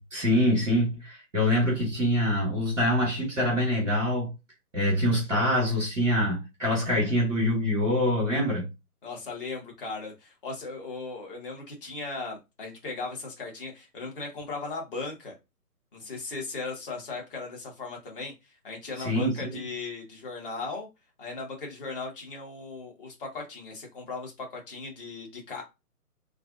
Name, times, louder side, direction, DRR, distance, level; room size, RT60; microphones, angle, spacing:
voice 1, 0.1-4.3 4.7-8.7 19.0-19.6, left 1 dB, ahead, 0.5 m, -25 dB
voice 2, 9.0-15.3 15.9-18.3 18.6-20.9 21.2-25.6, left 3 dB, 35° left, 1.5 m, -37 dB
3.0 x 2.4 x 2.6 m
figure-of-eight pair, 145°, 46 cm